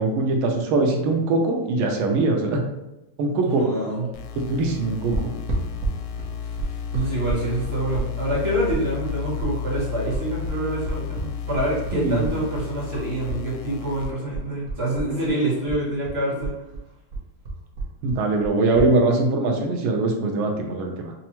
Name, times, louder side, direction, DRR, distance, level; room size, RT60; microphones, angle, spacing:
voice 1, 0.0-2.6 3.2-3.6 4.4-5.3 11.9-12.2 18.0-21.1, right 3 dB, 75° right, 2 dB, 1.4 m, -22 dB
voice 2, 3.5-4.1 6.5-6.6 6.9-16.5, right 1 dB, 35° right, -6 dB, 1.1 m, -26 dB
sound 1, 4.1-14.1, left 7 dB, 75° left, 1.1 m, -32 dB
sound 2, 5.1-13.4 13.7-15.4 15.7-18.9, right 3 dB, 60° right, 0.9 m, -31 dB
5.5 x 2.0 x 2.9 m, 0.95 s
omnidirectional pair, 2.4 m